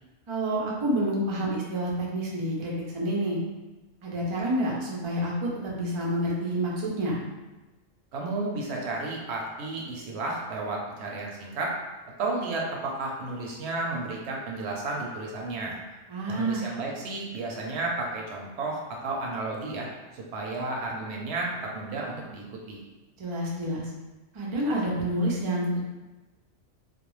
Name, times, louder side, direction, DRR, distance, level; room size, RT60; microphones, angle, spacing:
voice 1, 0.3-3.4 4.0-7.2 16.1-16.6 23.2-23.8 24.3-25.8, right 1 dB, 45° right, -4 dB, 0.4 m, -28 dB
voice 2, 8.1-11.7 12.2-15.8 16.3-19.9 20.1-22.8, right 2 dB, 65° right, -1 dB, 0.8 m, -32 dB
2.4 x 2.1 x 3.0 m, 1.1 s
omnidirectional pair, 1.3 m